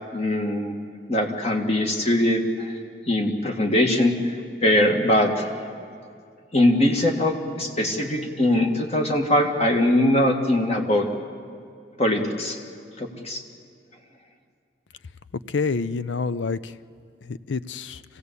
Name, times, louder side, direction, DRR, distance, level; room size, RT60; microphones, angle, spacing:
voice 1, 0.1-0.8 1.1-2.7 3.1-4.2 4.6-5.5 6.5-11.1 12.0-12.6 13.0-13.4, left 1 dB, 35° left, 3 dB, 2.0 m, -21 dB
voice 2, 15.5-16.7 17.2-18.0, left 4 dB, 85° left, 15 dB, 0.6 m, -27 dB
26.0 x 17.0 x 8.3 m, 2.2 s
head